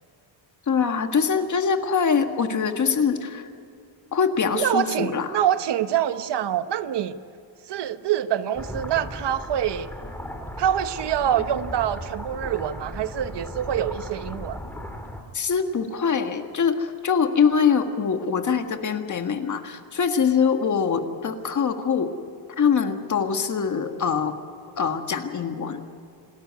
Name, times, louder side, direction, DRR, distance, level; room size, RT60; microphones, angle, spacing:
voice 1, 0.7-3.5 4.1-5.3 15.3-22.1 22.6-24.3 24.8-25.8, left 6 dB, 40° left, 6 dB, 1.7 m, -23 dB
voice 2, 4.5-7.1 7.7-9.9 10.6-14.6, right 10 dB, 60° right, 11 dB, 1.0 m, -25 dB
sound 1, 8.6-15.2, left 1 dB, 5° left, 2.6 m, -36 dB
28.0 x 13.0 x 9.5 m, 2.5 s
cardioid pair, 135°, 46 cm